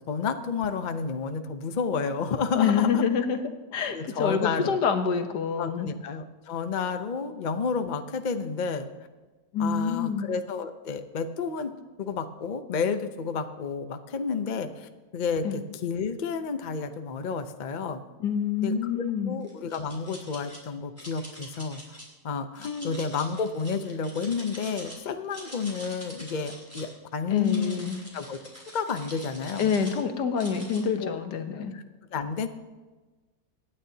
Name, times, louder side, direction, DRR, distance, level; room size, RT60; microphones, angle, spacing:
voice 1, 0.1-3.0 3.9-4.8 5.6-8.9 9.6-11.7 12.0-18.0 18.6-21.8 22.2-27.8 28.1-28.4 28.7-29.7 31.0-31.1 31.7-31.8 32.1-32.5, left 5 dB, 55° left, 8 dB, 0.5 m, -31 dB
voice 2, 2.5-3.4 3.7-5.9 9.5-10.3 15.4-15.6 18.2-19.4 22.6-22.9 27.3-28.0 29.6-31.7, left 6 dB, 75° left, 7 dB, 1.6 m, -27 dB
sound 1, 19.4-20.6 21.0-22.0 22.5-25.0 25.2-26.9 27.4-30.0 30.4-30.8, equal, 10° right, 3.4 m, -45 dB
24.5 x 9.8 x 2.8 m, 1.2 s
omnidirectional pair, 1.8 m